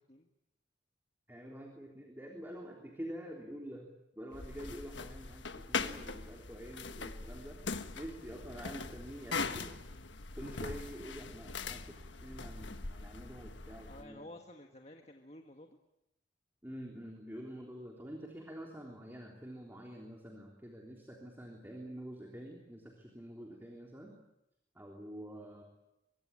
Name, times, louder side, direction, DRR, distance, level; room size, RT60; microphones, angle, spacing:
voice 1, 1.3-3.9 4.1-7.6 7.9-9.8 10.4-14.2 16.6-24.2 24.8-25.6, equal, 10° right, 0 dB, 3.5 m, -47 dB
sound 1, 4.3-14.0, left 4 dB, 80° left, 1.4 m, -41 dB
voice 2, 13.8-15.8, left 1 dB, 35° left, 4 dB, 1.7 m, -52 dB
24.5 x 23.5 x 8.8 m, 0.87 s
head